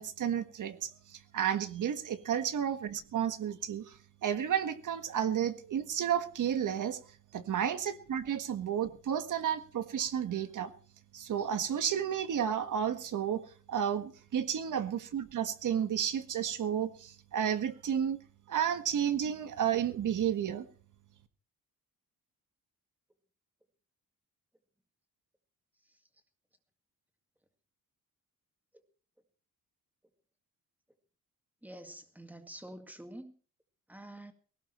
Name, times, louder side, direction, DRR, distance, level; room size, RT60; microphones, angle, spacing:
voice 1, 0.0-7.0 7.3-10.7 11.1-13.4 13.7-18.2 18.5-20.7, right 9 dB, 60° right, 9 dB, 1.7 m, -32 dB
voice 2, 31.6-33.3 33.9-34.3, right 1 dB, 5° right, 6 dB, 1.9 m, -47 dB
19.5 x 17.5 x 3.2 m, 0.41 s
cardioid pair, 130°, 35 cm